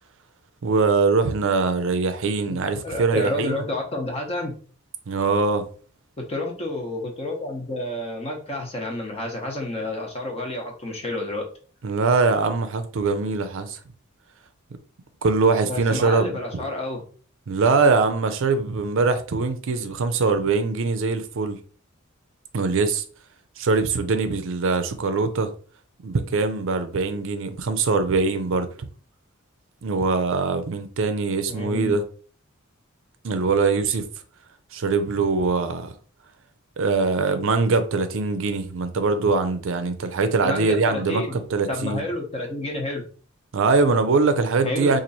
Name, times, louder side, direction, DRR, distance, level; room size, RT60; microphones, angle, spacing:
voice 1, 0.6-3.6 5.1-5.7 11.8-13.8 15.2-16.6 17.5-21.6 22.5-23.0 23.6-25.5 26.0-28.7 29.8-32.0 33.2-34.0 34.7-35.9 36.8-42.0 43.5-45.0, right 4 dB, 65° right, 0.5 m, -22 dB
voice 2, 2.5-4.5 6.2-11.5 15.7-17.0 31.5-32.0 40.4-41.4 41.7-43.1 44.6-45.0, left 1 dB, 30° left, 0.9 m, -30 dB
3.0 x 2.5 x 4.0 m
head